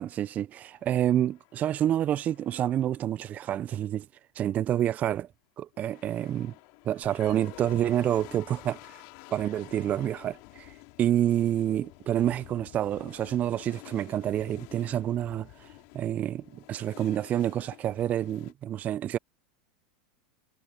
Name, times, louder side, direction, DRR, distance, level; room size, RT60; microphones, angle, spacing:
voice 1, 0.0-4.1 4.4-5.3 5.6-6.5 6.9-9.0 9.3-15.7 15.9-19.2, right 11 dB, 35° right, 0.6 m, -28 dB
sound 1, 0.8-3.1 5.7-18.5, left 32 dB, 55° left, 2.9 m, -50 dB
figure-of-eight pair, 90°, 5 cm